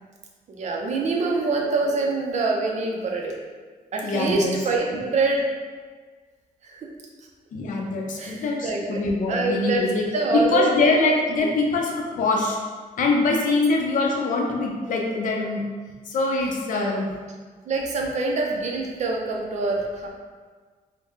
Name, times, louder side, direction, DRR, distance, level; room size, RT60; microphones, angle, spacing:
voice 1, 0.5-3.3 3.9-5.4 6.6-6.9 8.2-9.0 9.3-9.8 10.1-10.7 16.7-17.0 17.7-20.1, right 3 dB, 50° right, 0 dB, 0.5 m, -25 dB
voice 2, 4.0-4.5 7.5-10.1 10.3-12.6 13.0-15.6 16.1-17.1, left 3 dB, 60° left, 0 dB, 0.6 m, -23 dB
3.9 x 2.1 x 3.1 m, 1.5 s
cardioid pair, 135°, 15 cm